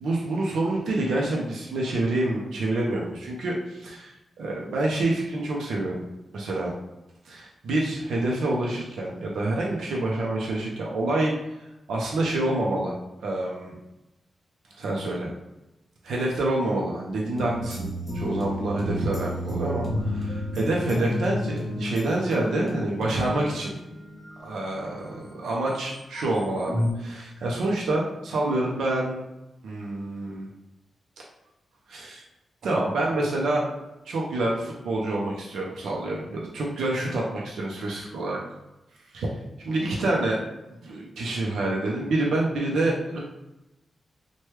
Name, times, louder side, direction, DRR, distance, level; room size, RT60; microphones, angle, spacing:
voice 1, 0.0-5.9 6.3-6.7 7.2-11.3 11.9-12.9 13.2-13.8 14.8-15.3 16.0-23.7 24.4-29.2 29.6-30.5 31.9-32.2 32.6-38.4 39.1-39.3 39.6-40.4 40.7-43.2, right 2 dB, 90° right, -3 dB, 0.5 m, -27 dB
sound 1, 17.3-25.1 25.8-26.9, equal, 15° left, 1.0 m, -31 dB
3.1 x 2.2 x 3.0 m, 0.97 s
wide cardioid pair, 110°, 0 cm